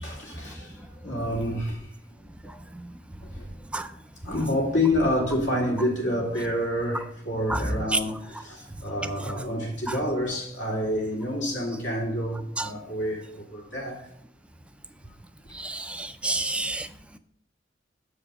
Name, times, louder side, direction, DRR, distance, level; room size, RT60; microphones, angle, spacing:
voice 1, 0.0-1.9 3.2-3.5 4.2-14.1, left 1 dB, 85° left, 2.5 m, -28 dB
voice 2, 15.5-16.9, right 2 dB, 5° right, 0.3 m, -28 dB
7.0 x 5.0 x 6.0 m
head